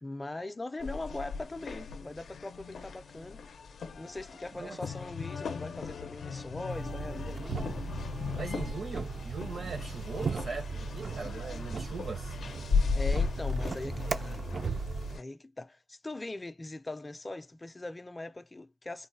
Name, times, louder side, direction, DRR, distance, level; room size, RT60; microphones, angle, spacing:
voice 1, 0.0-3.5 4.0-7.8 12.9-14.4 15.1-19.1, left 2 dB, 20° left, 0.4 m, -41 dB
sound 1, 0.8-15.2, left 5 dB, 75° left, 0.5 m, -36 dB
sound 2, 6.7-15.2, right 4 dB, 45° right, 0.4 m, -37 dB
voice 2, 8.3-12.4, right 4 dB, 70° right, 0.8 m, -40 dB
3.8 x 2.2 x 2.6 m
wide cardioid pair, 120°, 0 cm